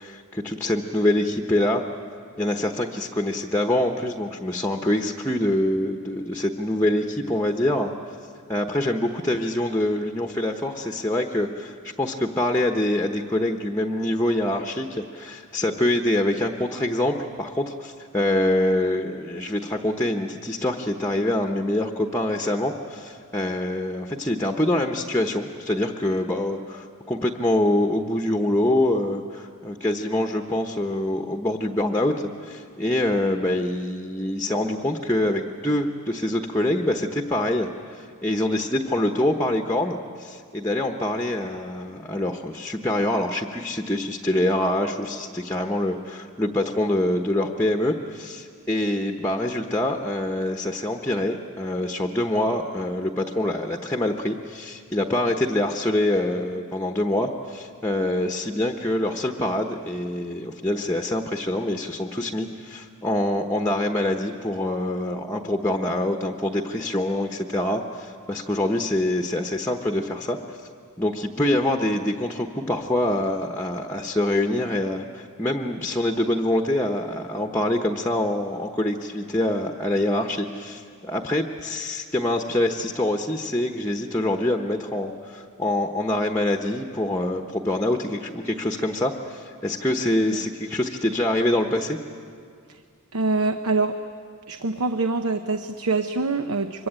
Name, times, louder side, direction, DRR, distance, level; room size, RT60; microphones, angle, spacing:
voice 1, 0.0-1.8 2.4-7.9 8.5-70.4 71.0-92.0, left 1 dB, 10° left, 4 dB, 0.9 m, -25 dB
voice 2, 93.1-94.0 94.5-96.9, right 3 dB, 80° right, 8 dB, 0.9 m, -25 dB
25.0 x 23.0 x 8.9 m, 2.3 s
head